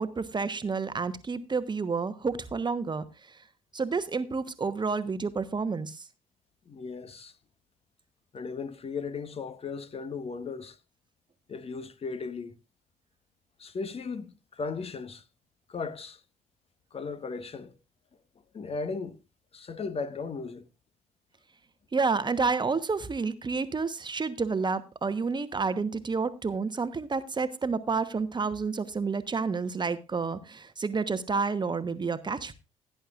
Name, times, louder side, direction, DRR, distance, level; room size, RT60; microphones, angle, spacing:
voice 1, 0.0-3.4 3.7-6.1 21.9-32.5, right 4 dB, 25° right, 1.1 m, -30 dB
voice 2, 6.7-7.3 8.3-10.8 11.5-12.5 13.6-15.2 15.7-16.2 16.9-17.7 18.5-19.2 19.5-20.7, left 4 dB, 35° left, 1.3 m, -36 dB
17.0 x 10.5 x 2.5 m
figure-of-eight pair, 50°, 17 cm